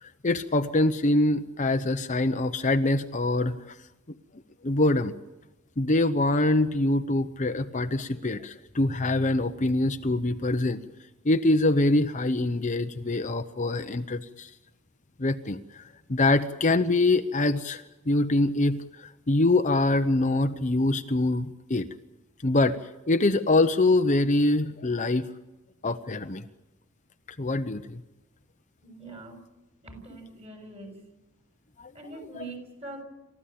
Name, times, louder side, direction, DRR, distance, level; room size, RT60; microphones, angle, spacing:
voice 1, 0.0-3.7 4.6-5.1 5.8-10.8 11.2-14.5 15.2-15.8 16.1-21.9 22.4-22.8 23.1-25.3 25.8-26.4 27.4-28.0 31.8-31.9, left 2 dB, 35° left, 8 dB, 0.9 m, -24 dB
voice 2, 28.8-29.4 29.8-31.0 31.9-33.0, right 2 dB, 30° right, 5 dB, 6.7 m, -43 dB
28.5 x 14.5 x 8.7 m, 1.0 s
head